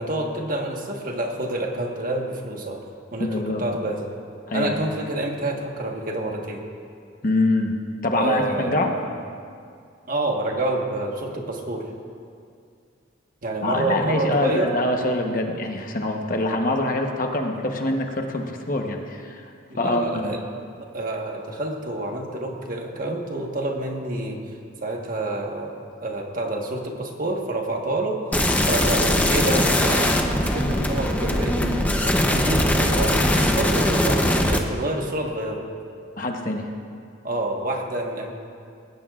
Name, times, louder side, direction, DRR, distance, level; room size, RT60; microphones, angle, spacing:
voice 1, 0.0-4.1 4.5-6.6 8.1-8.7 10.1-11.9 13.4-14.7 19.7-20.4 20.9-24.4 24.8-28.2 28.7-30.1 30.4-35.6 37.2-38.3, right 2 dB, 45° right, 1 dB, 1.4 m, -28 dB
voice 2, 3.2-3.6 4.5-4.8 7.2-7.8 8.0-8.9 13.6-19.5 19.8-20.3 36.2-36.6, left 2 dB, 45° left, 3 dB, 1.1 m, -24 dB
sound 1, 28.3-34.6, left 1 dB, 10° left, 0.7 m, -21 dB
20.0 x 17.0 x 2.5 m, 2.3 s
head